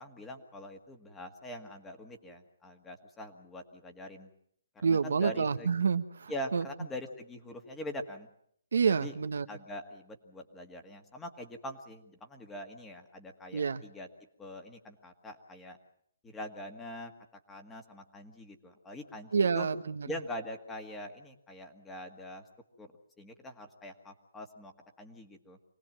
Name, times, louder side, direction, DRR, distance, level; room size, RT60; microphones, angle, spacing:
voice 1, 0.0-4.3 4.7-5.7 6.3-8.3 8.9-9.1 9.5-14.1 14.4-15.8 16.2-17.1 17.5-19.7 20.1-22.4 22.8-22.9 23.2-24.7 25.0-25.6, left 1 dB, 10° left, 4 dB, 1.9 m, -43 dB
voice 2, 4.8-6.6 8.7-9.5 13.5-13.8 19.3-20.1, right 5 dB, 70° right, 10 dB, 1.1 m, -28 dB
25.5 x 18.5 x 7.5 m, 0.67 s
hypercardioid pair, 160°, 0 cm